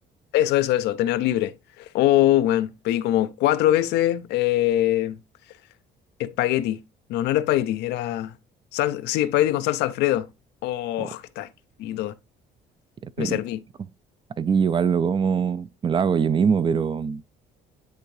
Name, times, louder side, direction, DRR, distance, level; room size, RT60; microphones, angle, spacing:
voice 1, 0.3-5.2 6.2-6.8 7.1-8.3 8.7-10.3 10.6-11.5 11.8-12.1 13.2-13.6, left 14 dB, 85° left, 0.6 m, -23 dB
voice 2, 13.0-13.4 14.4-17.2, right 6 dB, 30° right, 0.4 m, -23 dB
10.0 x 3.5 x 3.2 m
cardioid pair, 110°, 17 cm